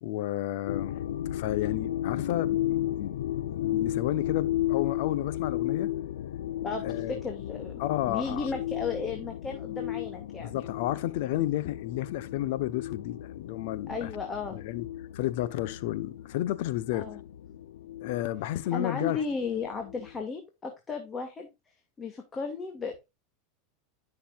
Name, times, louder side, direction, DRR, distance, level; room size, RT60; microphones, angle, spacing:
voice 1, 0.0-3.2 3.5-5.9 6.8-7.2 7.8-8.5 10.4-14.1 14.5-14.9 15.1-17.1 18.0-19.2, left 14 dB, 70° left, 1.1 m, -32 dB
sound 1, 0.7-20.1, left 13 dB, 85° left, 0.8 m, -34 dB
voice 2, 6.6-10.6 13.9-14.6 16.9-17.2 18.7-21.5 22.0-23.0, left 4 dB, 25° left, 2.4 m, -35 dB
13.0 x 6.8 x 2.5 m
supercardioid pair, 110°, 0 cm